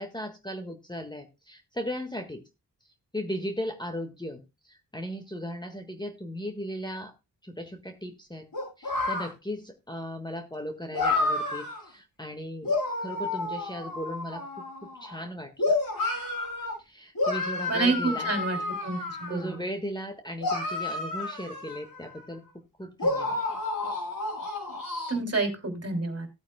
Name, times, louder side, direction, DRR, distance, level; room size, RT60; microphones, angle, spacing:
voice 1, 0.0-2.4 3.1-7.1 7.4-8.5 8.8-14.4 14.8-15.8 16.8-18.3 19.3-23.4, equal, 10° left, 5 dB, 1.6 m, -37 dB
sound 1, 8.5-9.3 10.9-11.8 12.6-15.2 15.6-16.7 17.2-19.6 20.4-22.3 23.0-25.1, left 2 dB, 60° left, 7.4 m, -30 dB
voice 2, 17.7-18.6 18.8-19.6 25.1-26.3, right 3 dB, 35° right, 4 dB, 3.0 m, -28 dB
17.5 x 8.6 x 2.2 m, 0.26 s
cardioid pair, 60°, 40 cm